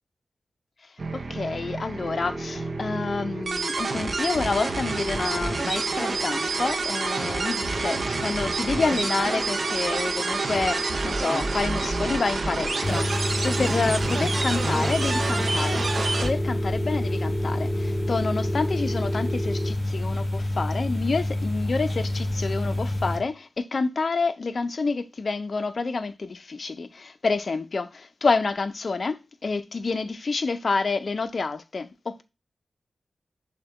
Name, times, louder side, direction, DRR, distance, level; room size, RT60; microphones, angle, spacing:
sound 1, 1.0-16.3, right 3 dB, 55° right, 0.5 m, -28 dB
voice 1, 1.1-32.2, left 4 dB, 55° left, 0.4 m, -28 dB
sound 2, 2.0-19.7, right 1 dB, 5° right, 0.6 m, -34 dB
sound 3, 12.8-23.2, left 1 dB, 30° left, 1.4 m, -28 dB
6.4 x 2.1 x 3.4 m
wide cardioid pair, 75°, 0 cm